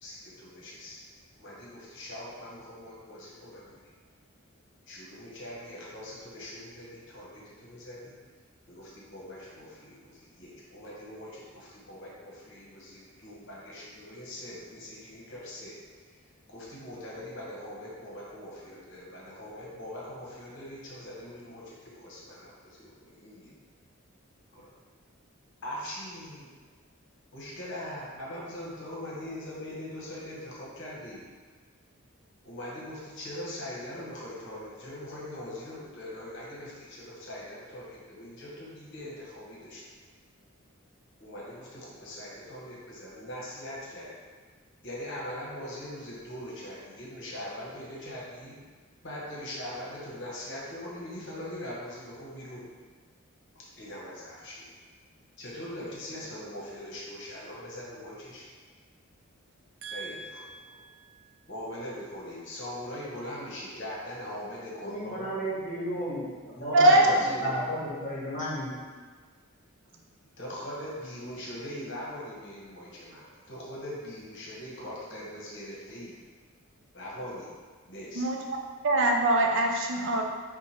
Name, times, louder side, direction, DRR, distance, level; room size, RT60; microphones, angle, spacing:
voice 1, 0.0-1.0 1.3-3.8 4.9-8.1 8.7-15.8 16.0-16.2 16.5-23.6 24.5-24.7 25.6-26.5 27.3-31.3 32.4-39.8 41.2-44.1 44.8-48.6 49.0-52.6 53.5-54.7 55.4-58.4 59.8-60.8 61.5-65.3 66.5-67.6 67.9-68.0 70.4-76.2 76.9-77.5 77.9-78.2, left 1 dB, 55° left, -5 dB, 1.0 m, -41 dB
voice 2, 59.8-61.0 66.7-67.1 78.2-78.4 78.8-80.2, right 1 dB, 60° right, 1 dB, 0.5 m, -24 dB
voice 3, 64.8-68.7, equal, 40° left, -7 dB, 1.3 m, -33 dB
4.7 x 2.2 x 4.3 m, 1.5 s
head